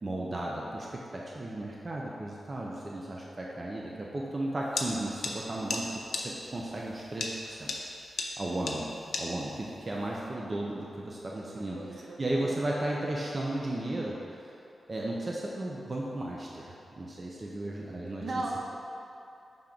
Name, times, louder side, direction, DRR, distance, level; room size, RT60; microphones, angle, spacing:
voice 1, 0.0-7.7 8.4-8.9 9.2-14.4 14.9-18.4, right 1 dB, 35° right, -3 dB, 0.6 m, -35 dB
sound 1, 4.8-4.9 5.2-5.3 5.7-5.8 6.1-6.2 7.2-7.3 7.7-7.8 8.2-8.3 8.7-8.8 9.1-9.2, left 4 dB, 80° left, 0.6 m, -31 dB
voice 2, 8.8-9.1 11.5-12.6 18.2-18.6, right 2 dB, 65° right, -2 dB, 0.9 m, -38 dB
5.9 x 3.6 x 5.1 m, 2.8 s
wide cardioid pair, 95°, 0 cm